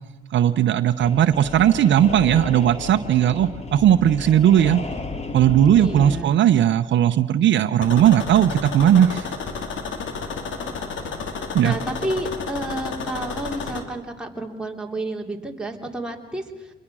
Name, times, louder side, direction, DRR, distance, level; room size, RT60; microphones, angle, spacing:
voice 1, 0.3-4.8 5.3-9.3 11.5-11.7, right 10 dB, 70° right, 10 dB, 0.8 m, -17 dB
sound 1, 1.0-6.2, left 3 dB, 35° left, 2.1 m, -33 dB
voice 2, 5.7-6.3 10.5-10.9 11.6-16.4, right 1 dB, 5° right, 0 dB, 3.2 m, -30 dB
sound 2, 7.8-13.8, left 5 dB, 75° left, 2.7 m, -31 dB
26.5 x 22.0 x 6.2 m, 1.2 s
cardioid pair, 90°, 20 cm